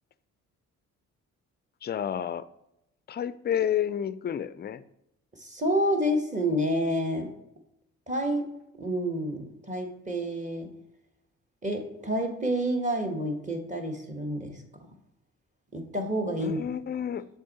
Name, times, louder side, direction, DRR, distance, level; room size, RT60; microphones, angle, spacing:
voice 1, 1.8-2.5 3.1-4.8 16.4-17.2, left 9 dB, 30° left, 14 dB, 0.4 m, -30 dB
voice 2, 5.3-7.3 8.1-8.5 8.8-10.7 11.6-14.6 15.7-16.6, equal, 20° right, 4 dB, 1.4 m, -29 dB
6.5 x 3.6 x 4.1 m, 0.83 s
supercardioid pair, 60°, 34 cm